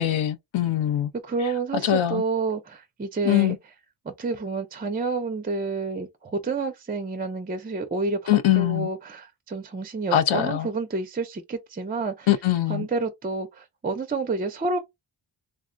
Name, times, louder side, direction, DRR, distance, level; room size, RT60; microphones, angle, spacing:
voice 1, 0.0-1.1 1.4-2.2 3.2-3.6 8.3-8.9 10.1-10.7 12.3-12.9, left 12 dB, 80° left, 0.7 m, -23 dB
voice 2, 1.2-3.6 4.1-12.3 12.7-14.8, right 3 dB, 20° right, 0.3 m, -29 dB
3.5 x 2.0 x 2.4 m
wide cardioid pair, 135°, 47 cm